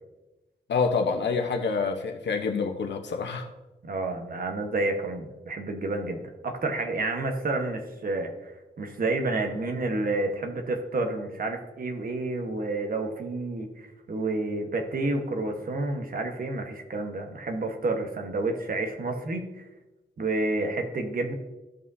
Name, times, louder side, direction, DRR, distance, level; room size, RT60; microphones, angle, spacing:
voice 1, 0.7-3.5, left 5 dB, 85° left, 4 dB, 1.0 m, -27 dB
voice 2, 3.8-19.6 20.2-21.3, right 2 dB, 55° right, 4 dB, 1.3 m, -30 dB
15.5 x 5.4 x 2.7 m, 1.1 s
wide cardioid pair, 110°, 18 cm